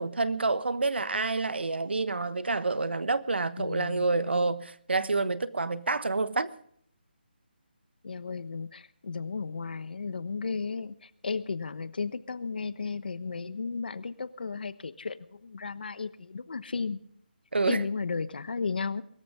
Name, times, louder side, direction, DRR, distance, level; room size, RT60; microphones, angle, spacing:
voice 1, 0.0-6.5 17.5-17.8, right 3 dB, 90° right, 1.3 m, -28 dB
voice 2, 3.6-4.1 8.0-17.0 17.7-19.0, left 4 dB, 60° left, 1.1 m, -34 dB
23.0 x 14.0 x 3.7 m
hypercardioid pair, 165°, 6 cm